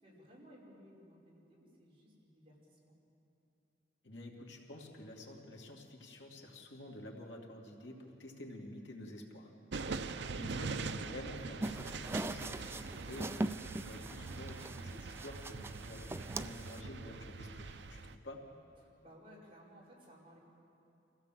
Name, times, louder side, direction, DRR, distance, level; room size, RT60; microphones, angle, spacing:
voice 1, 0.0-3.0 9.8-10.3 18.8-20.4, equal, 30° right, -5 dB, 5.2 m, -59 dB
voice 2, 4.0-9.5 10.4-13.3 13.6-18.4, left 1 dB, 75° left, 0 dB, 2.5 m, -49 dB
sound 1, 9.7-18.2, right 4 dB, 70° right, 0.7 m, -43 dB
sound 2, 11.6-16.8, right 2 dB, 15° right, 0.4 m, -41 dB
26.0 x 15.5 x 7.6 m, 2.8 s
head